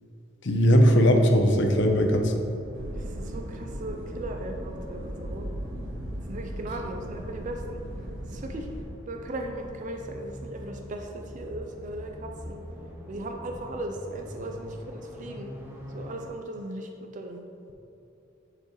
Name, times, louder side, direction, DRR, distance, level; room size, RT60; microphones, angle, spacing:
voice 1, 0.4-2.3, equal, 65° left, 4 dB, 0.7 m, -19 dB
sound 1, 0.9-16.3, equal, 10° right, 0.8 m, -44 dB
sound 2, 2.7-8.8, right 1 dB, 80° right, 1.1 m, -37 dB
voice 2, 2.9-5.5 6.3-7.8 8.3-8.7 9.1-12.6 13.1-15.5 15.9-17.4, right 1 dB, 40° right, 3 dB, 0.4 m, -37 dB
9.6 x 4.5 x 3.1 m, 3.0 s
head